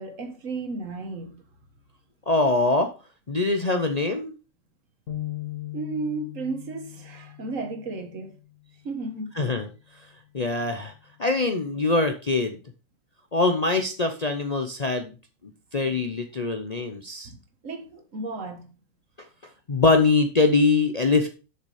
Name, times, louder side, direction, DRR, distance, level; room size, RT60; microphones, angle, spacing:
voice 1, 0.0-1.4 5.7-8.3 8.8-9.4 15.9-16.1 17.3-17.4 17.6-18.7, right 3 dB, 60° right, 1.7 m, -34 dB
voice 2, 2.3-2.9 3.3-4.3 9.4-9.7 10.3-10.9 11.2-12.6 13.3-15.1 15.7-17.3 19.7-21.3, left 3 dB, 40° left, 0.7 m, -23 dB
sound 1, 5.1-8.6, left 15 dB, 60° left, 1.8 m, -38 dB
6.9 x 6.6 x 4.8 m
omnidirectional pair, 1.5 m